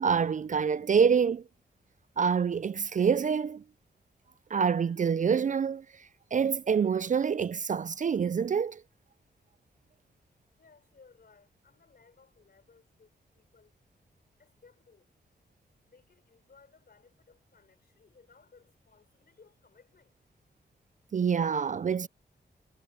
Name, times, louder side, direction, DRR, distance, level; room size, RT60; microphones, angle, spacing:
voice 1, 0.0-1.4 2.2-3.6 4.5-5.8 6.3-8.8 21.1-22.1, right 6 dB, 45° right, 0.4 m, -26 dB
voice 2, 10.6-13.7 14.4-15.1 15.8-20.2, left 5 dB, 55° left, 4.7 m, -61 dB
cardioid pair, 50°, 19 cm